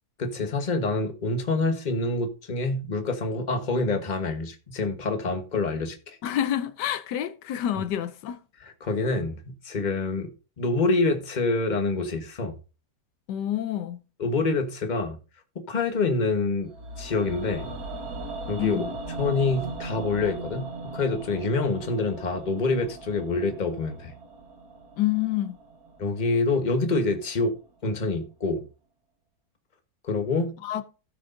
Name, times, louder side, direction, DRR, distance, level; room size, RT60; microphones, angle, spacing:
voice 1, 0.2-6.2 8.8-10.3 10.6-12.6 14.2-15.2 15.5-16.7 17.0-17.8 18.5-18.8 19.2-24.1 26.0-27.5 27.8-28.6 30.0-30.5, left 3 dB, 30° left, 1.3 m, -26 dB
voice 2, 6.2-8.4 13.3-14.0 18.6-18.9 25.0-25.6 30.6-30.8, left 12 dB, 80° left, 1.3 m, -28 dB
sound 1, 16.7-26.8 27.1-27.2, right 2 dB, 65° right, 1.7 m, -38 dB
17.0 x 6.2 x 2.7 m
omnidirectional pair, 1.8 m